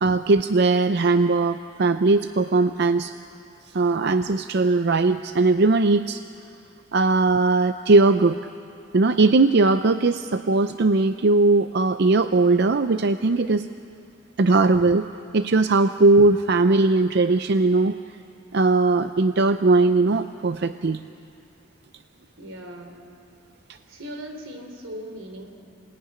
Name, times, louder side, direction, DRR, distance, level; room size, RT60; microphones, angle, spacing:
voice 1, 0.0-3.1 3.7-6.2 6.9-8.4 8.9-13.7 14.4-15.1 15.3-18.0 18.5-21.0, right 3 dB, 55° right, 10 dB, 0.5 m, -19 dB
voice 2, 22.4-23.1 23.9-25.5, equal, 85° right, 5 dB, 3.4 m, -38 dB
26.5 x 18.0 x 9.8 m, 2.5 s
head